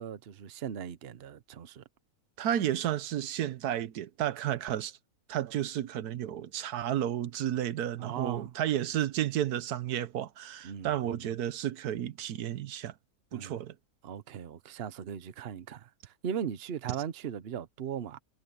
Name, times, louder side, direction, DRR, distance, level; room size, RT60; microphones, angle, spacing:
voice 1, 0.0-1.8 8.0-8.5 10.6-11.2 13.3-13.6 14.0-18.2, right 8 dB, 50° right, 1.0 m, -38 dB
voice 2, 2.4-5.0 5.3-12.9 13.3-13.7, right 11 dB, 85° right, 1.3 m, -32 dB
omnidirectional pair, 1.6 m